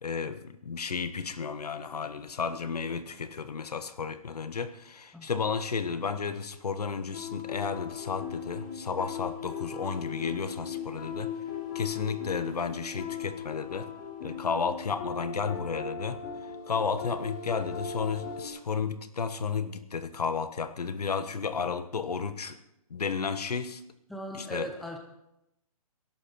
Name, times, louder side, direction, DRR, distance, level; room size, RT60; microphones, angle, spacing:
voice 1, 0.0-11.3 11.7-13.9 14.2-16.2 16.7-22.6 22.9-23.8 24.3-24.7, left 5 dB, 85° left, 11 dB, 1.4 m, -32 dB
sound 1, 7.1-18.5, left 6 dB, 30° left, 2.9 m, -38 dB
voice 2, 24.1-25.0, equal, ahead, 2 dB, 0.6 m, -38 dB
20.5 x 11.5 x 4.4 m, 0.86 s
hypercardioid pair, 170°, 20 cm